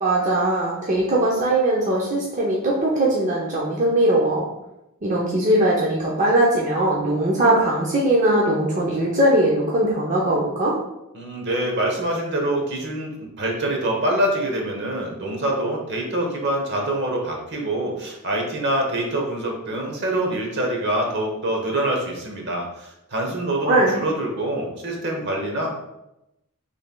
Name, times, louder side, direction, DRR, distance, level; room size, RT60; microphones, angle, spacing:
voice 1, 0.0-4.5 5.0-10.7 23.7-24.0, right 1 dB, 35° right, -4 dB, 0.6 m, -20 dB
voice 2, 11.1-25.7, right 1 dB, 55° right, 1 dB, 0.9 m, -25 dB
5.5 x 3.3 x 2.2 m, 0.90 s
head